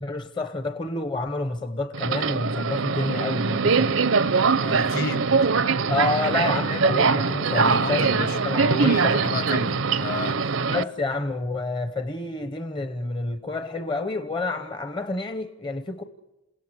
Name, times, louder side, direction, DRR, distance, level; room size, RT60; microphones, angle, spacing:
voice 1, 0.0-3.9 5.9-8.1 8.4-9.2 10.7-16.0, left 2 dB, 20° left, 1.0 m, -29 dB
Subway metro underground, 1.9-10.8, right 5 dB, 70° right, 0.8 m, -22 dB
voice 2, 4.6-5.3 7.5-8.4 8.6-10.6, left 2 dB, 45° left, 1.6 m, -31 dB
28.0 x 17.5 x 9.9 m
head